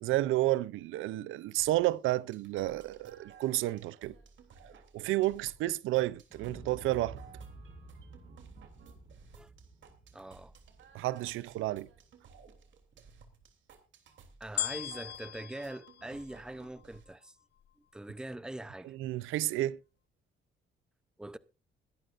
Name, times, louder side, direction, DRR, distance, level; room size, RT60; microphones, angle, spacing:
voice 1, 0.0-4.1 4.9-7.2 10.9-11.9 19.0-19.8, right 16 dB, 90° right, 0.6 m, -31 dB
sound 1, 1.6-17.0, right 6 dB, 70° right, 3.2 m, -57 dB
Explosion, 6.3-12.3 12.7-12.8, right 2 dB, 25° right, 6.7 m, -52 dB
voice 2, 10.1-10.5 14.4-17.4 17.9-18.9 21.2-21.4, right 1 dB, 5° right, 0.6 m, -43 dB
sound 2, 14.6-17.0 17.6-17.7, left 12 dB, 55° left, 0.6 m, -39 dB
21.5 x 11.5 x 2.6 m
cardioid pair, 90°, 20 cm